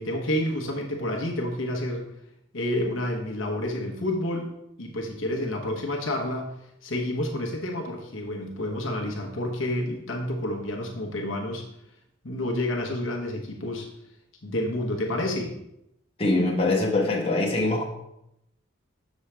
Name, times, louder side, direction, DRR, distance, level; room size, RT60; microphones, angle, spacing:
voice 1, 0.0-2.1 2.5-4.5 4.8-6.5 6.8-11.6 12.2-13.9 14.4-15.6, left 1 dB, 65° left, 1 dB, 1.1 m, -29 dB
voice 2, 16.2-17.8, left 2 dB, 25° left, -2 dB, 1.2 m, -23 dB
7.2 x 6.3 x 3.3 m, 0.82 s
head